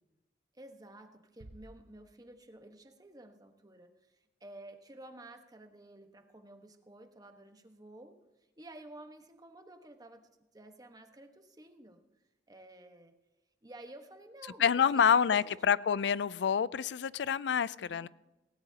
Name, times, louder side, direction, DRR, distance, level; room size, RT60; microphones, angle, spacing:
voice 1, 0.6-1.1 1.4-3.9 4.4-8.1 8.6-10.2 10.5-12.0 12.5-13.1 13.6-15.5 17.8-18.1, right 1 dB, 20° right, 6 dB, 1.2 m, -52 dB
sound 1, 1.4-3.0, right 1 dB, 80° right, 0.9 m, -56 dB
voice 2, 14.6-18.1, left 7 dB, 75° left, 19 dB, 0.4 m, -27 dB
19.5 x 17.5 x 2.9 m, 1.0 s
head